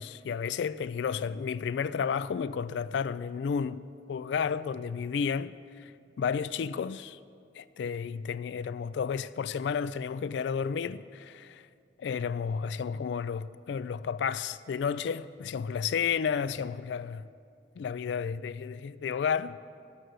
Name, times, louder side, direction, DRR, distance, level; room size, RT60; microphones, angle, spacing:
voice 1, 0.0-5.9 6.2-7.2 7.6-11.6 12.0-17.3 17.8-19.6, left 6 dB, 65° left, 0.3 m, -32 dB
14.5 x 6.3 x 9.6 m
head